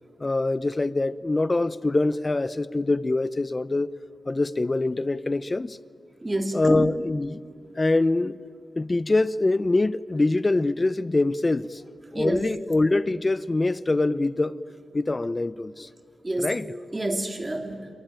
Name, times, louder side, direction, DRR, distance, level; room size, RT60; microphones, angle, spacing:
voice 1, 0.2-3.9 4.3-5.8 6.5-7.4 7.8-8.4 8.8-11.8 12.1-14.6 14.9-15.9 16.4-16.7, left 2 dB, 30° left, 0.7 m, -24 dB
voice 2, 6.2-6.8 12.1-12.5 16.2-16.6 16.9-17.9, right 1 dB, 25° right, 2.7 m, -28 dB
27.5 x 23.5 x 9.0 m
cardioid pair, 80°, 0 cm